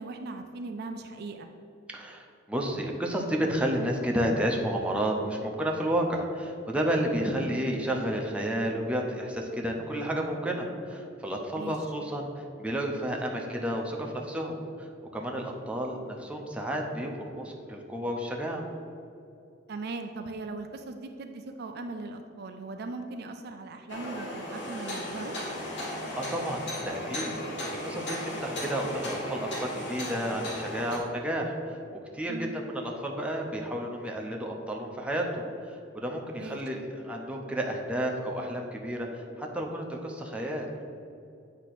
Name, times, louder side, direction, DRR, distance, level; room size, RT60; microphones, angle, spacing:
voice 1, 0.0-1.5 11.6-11.7 19.7-25.4 32.3-32.5 36.4-36.6, right 3 dB, 55° right, 5 dB, 0.4 m, -39 dB
voice 2, 1.9-18.6 25.8-40.7, equal, 5° right, 0 dB, 0.7 m, -31 dB
sound 1, 23.9-31.0, left 1 dB, 65° left, 1.5 m, -36 dB
8.2 x 2.9 x 5.9 m, 2.5 s
head